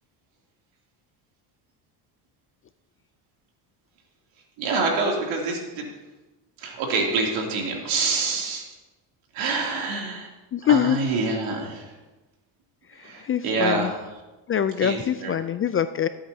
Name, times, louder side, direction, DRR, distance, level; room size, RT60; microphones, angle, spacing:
voice 1, 4.6-5.9 6.6-8.6 9.3-10.3 10.7-11.9 13.0-13.9 14.8-15.3, right 3 dB, 80° right, -1 dB, 3.0 m, -26 dB
voice 2, 10.5-11.0 12.9-13.9 14.5-16.1, left 9 dB, 30° left, 12 dB, 0.3 m, -24 dB
19.5 x 8.6 x 2.8 m, 1.1 s
cardioid pair, 100°, 48 cm